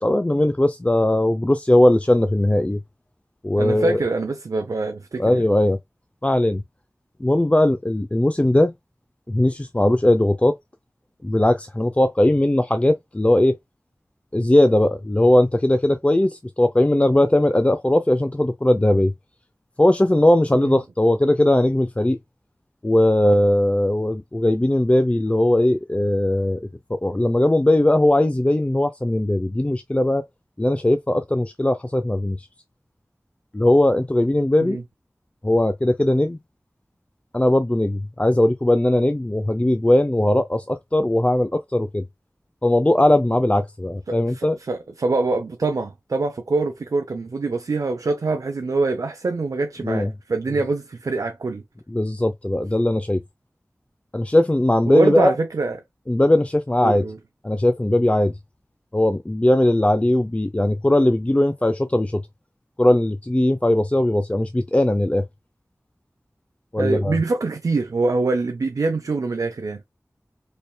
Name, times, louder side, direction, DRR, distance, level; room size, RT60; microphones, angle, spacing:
voice 1, 0.0-2.8 3.4-4.0 5.2-5.8 6.2-6.6 7.2-8.7 9.3-10.6 11.2-13.6 14.3-19.1 19.8-22.2 22.8-26.6 26.9-30.2 30.6-32.5 33.5-34.8 35.4-36.4 37.3-42.0 42.6-44.6 49.8-50.1 51.9-53.2 54.1-55.3 56.1-57.1 57.4-58.3 58.9-62.3 62.8-65.3 66.7-67.2, left 1 dB, 20° left, 0.5 m, -19 dB
voice 2, 3.6-5.4 20.5-20.8 34.6-34.8 44.1-51.6 54.9-55.8 56.8-57.2 66.8-69.8, right 3 dB, 85° right, 0.5 m, -24 dB
4.4 x 3.1 x 2.2 m
wide cardioid pair, 40°, 6 cm